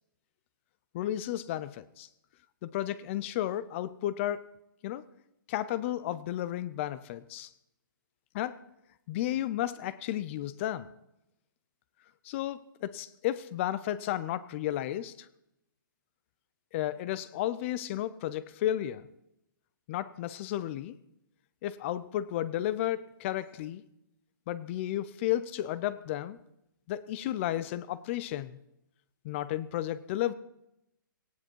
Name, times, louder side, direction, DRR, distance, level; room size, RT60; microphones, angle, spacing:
voice 1, 0.9-2.1 2.6-4.5 4.8-5.0 5.5-7.5 8.3-8.6 9.1-10.9 12.2-15.3 16.7-19.1 19.9-21.0 21.6-23.8 24.5-26.4 26.9-28.6 29.2-30.3, left 13 dB, 35° left, 0.7 m, -33 dB
18.0 x 16.0 x 4.6 m
hypercardioid pair, 150°, 11 cm